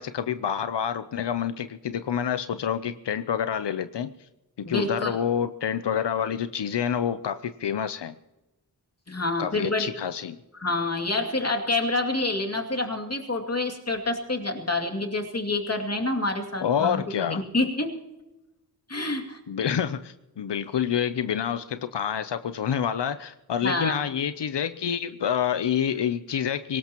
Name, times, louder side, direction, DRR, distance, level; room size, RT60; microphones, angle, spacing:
voice 1, 0.0-4.1 4.6-8.1 9.4-10.4 16.6-17.4 19.5-26.8, left 8 dB, 90° left, 11 dB, 0.6 m, -28 dB
voice 2, 4.7-5.2 9.1-9.9 10.5-17.0 17.3-17.9 18.9-19.4 23.6-24.0, left 2 dB, 40° left, 3 dB, 2.6 m, -27 dB
23.0 x 19.0 x 3.0 m, 1.0 s
wide cardioid pair, 55°, 40 cm